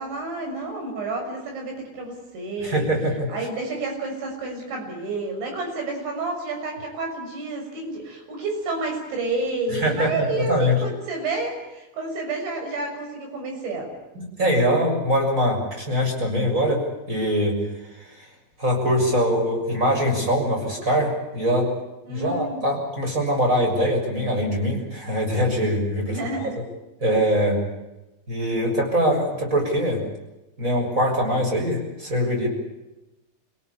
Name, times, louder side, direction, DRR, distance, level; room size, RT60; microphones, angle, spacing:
voice 1, 0.0-2.8 3.3-13.9 22.1-22.6 26.1-26.6, right 3 dB, 85° right, 2 dB, 8.7 m, -30 dB
voice 2, 2.6-3.3 9.7-10.7 14.1-17.6 18.0-18.2 18.6-21.7 22.1-26.2 27.0-27.6 28.3-30.0 30.6-32.5, equal, 15° right, 1 dB, 6.8 m, -23 dB
27.5 x 17.5 x 8.7 m, 0.99 s
omnidirectional pair, 5.1 m